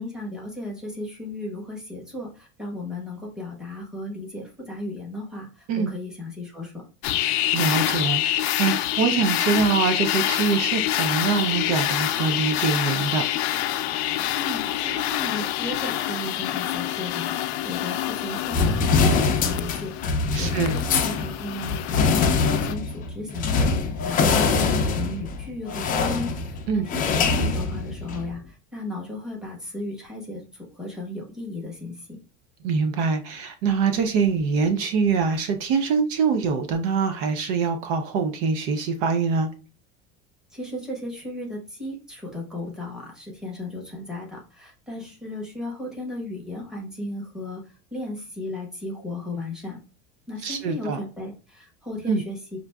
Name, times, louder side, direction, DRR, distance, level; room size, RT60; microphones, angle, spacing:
voice 1, 0.0-6.8 14.4-19.9 20.4-23.7 24.0-32.2 40.5-49.8 50.3-52.6, left 2 dB, ahead, 1.0 m, -35 dB
sound 1, 7.0-22.7, left 13 dB, 85° left, 0.5 m, -27 dB
voice 2, 7.5-13.3 20.3-20.7 26.7-26.9 32.6-39.5 50.4-51.0 52.1-52.2, right 5 dB, 60° right, 0.5 m, -24 dB
sound 2, 18.5-28.3, left 4 dB, 25° left, 0.4 m, -23 dB
5.8 x 2.5 x 2.2 m
cardioid pair, 160°, 32 cm